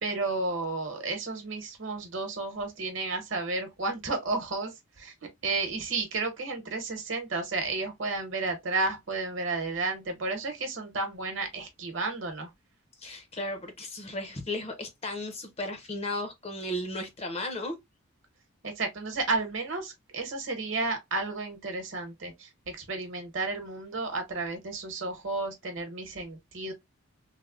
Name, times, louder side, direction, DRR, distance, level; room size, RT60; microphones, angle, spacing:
voice 1, 0.0-5.1 5.4-12.5 18.6-26.7, right 3 dB, 60° right, 1.0 m, -32 dB
voice 2, 13.0-17.8, left 1 dB, 30° left, 0.6 m, -35 dB
3.3 x 2.0 x 2.3 m
head